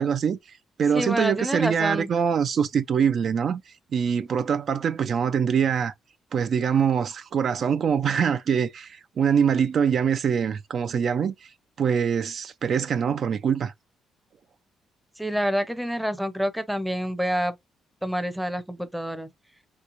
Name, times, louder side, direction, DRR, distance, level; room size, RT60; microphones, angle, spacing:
voice 1, 0.0-5.9 6.3-11.5 11.8-13.7, right 7 dB, 55° right, 0.3 m, -24 dB
voice 2, 0.9-2.1 15.2-17.5 18.0-19.3, equal, 5° right, 0.6 m, -27 dB
3.3 x 3.0 x 2.5 m
cardioid pair, 90°, 0 cm